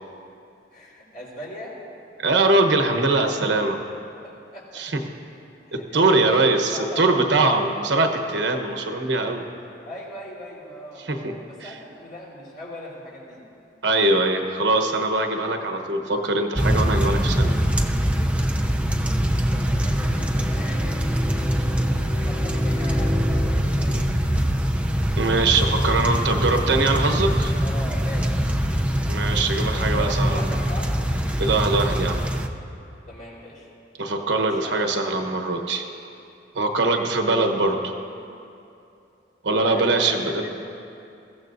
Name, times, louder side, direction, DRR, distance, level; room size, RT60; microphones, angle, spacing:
voice 1, 0.7-1.8 4.2-4.8 5.7-7.1 9.8-13.4 19.2-24.2 27.6-28.4 29.7-30.9 33.1-33.7 34.4-34.9 36.8-37.1 39.5-40.5, left 1 dB, 60° left, -5 dB, 3.8 m, -39 dB
voice 2, 2.2-3.8 4.7-5.0 5.7-9.4 11.1-11.3 11.6-11.7 13.8-17.6 25.2-27.5 29.1-30.4 31.4-32.2 34.0-35.8 36.5-37.9 39.4-40.5, right 2 dB, 75° right, 5 dB, 1.1 m, -22 dB
sound 1, 16.6-32.5, equal, 5° right, 0.5 m, -23 dB
21.5 x 15.5 x 2.6 m, 2.7 s
head